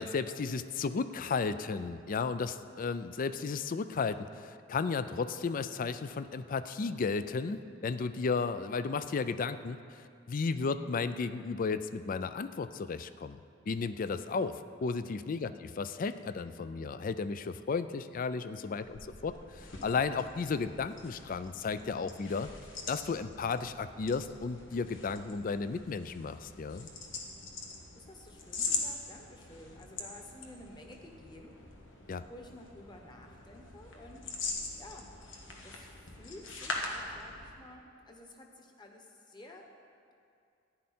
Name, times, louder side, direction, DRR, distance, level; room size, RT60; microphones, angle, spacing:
voice 1, 0.0-13.4 13.7-14.5 14.8-22.5 22.9-26.9 32.1-32.2, left 4 dB, 45° left, 13 dB, 0.4 m, -34 dB
voice 2, 18.7-19.1 27.9-31.5 32.3-34.3 34.8-35.1 35.6-39.7, left 1 dB, 25° left, 2 dB, 1.2 m, -52 dB
sound 1, 18.8-37.7, left 3 dB, 85° left, 1.6 m, -42 dB
14.5 x 10.5 x 4.3 m, 2.5 s
head